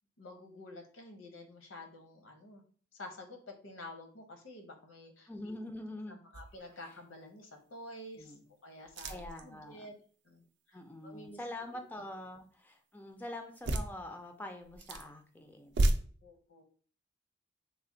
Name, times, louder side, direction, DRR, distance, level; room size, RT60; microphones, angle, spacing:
voice 1, 0.2-2.6 2.9-5.5 6.1-8.4 8.6-9.9 10.2-11.4 16.2-16.6, left 1 dB, 80° left, 4 dB, 0.8 m, -50 dB
voice 2, 5.3-6.2 6.8-7.0 8.2-8.4 9.1-9.9 10.7-15.9, left 1 dB, 10° left, 5 dB, 0.3 m, -45 dB
sound 1, 6.3-6.8 7.3-7.4 8.8-9.5 13.5-13.9 14.6-15.1 15.6-15.9, right 1 dB, 60° right, 0.4 m, -32 dB
3.2 x 2.1 x 3.7 m, 0.43 s
head